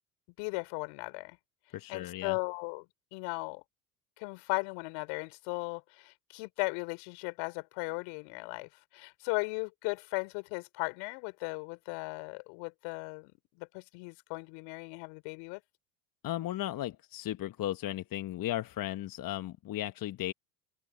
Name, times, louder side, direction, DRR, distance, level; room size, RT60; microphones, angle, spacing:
voice 1, 0.4-1.4 1.9-2.8 3.1-3.6 4.2-13.3 13.6-15.6, left 32 dB, 75° left, 4.9 m, -37 dB
voice 2, 1.7-2.4 16.2-20.3, left 14 dB, 45° left, 1.2 m, -35 dB
open air
hypercardioid pair, 70°, 46 cm